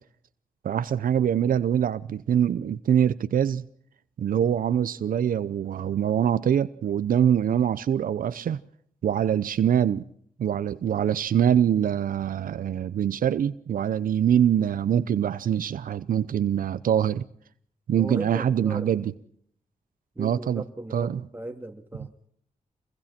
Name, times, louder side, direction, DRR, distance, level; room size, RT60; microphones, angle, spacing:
voice 1, 0.6-3.7 4.2-8.6 9.0-10.1 10.4-17.2 17.9-19.1 20.2-20.6 20.9-21.2, right 9 dB, 85° right, 0.8 m, -24 dB
voice 2, 18.0-19.2 20.1-22.3, right 2 dB, 15° right, 2.8 m, -38 dB
28.5 x 22.0 x 4.4 m
wide cardioid pair, 105°, 14 cm